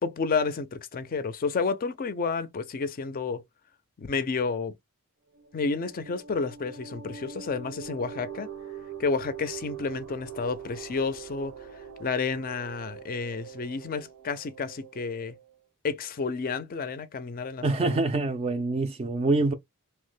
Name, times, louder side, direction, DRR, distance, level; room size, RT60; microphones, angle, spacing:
voice 1, 0.0-3.4 4.0-4.7 5.5-8.5 9.0-11.5 12.0-15.3 15.8-18.0, left 4 dB, 40° left, 0.4 m, -30 dB
sound 1, 5.3-15.6, right 7 dB, 75° right, 0.6 m, -43 dB
voice 2, 17.6-19.5, right 3 dB, 30° right, 0.3 m, -25 dB
2.9 x 2.1 x 3.2 m
head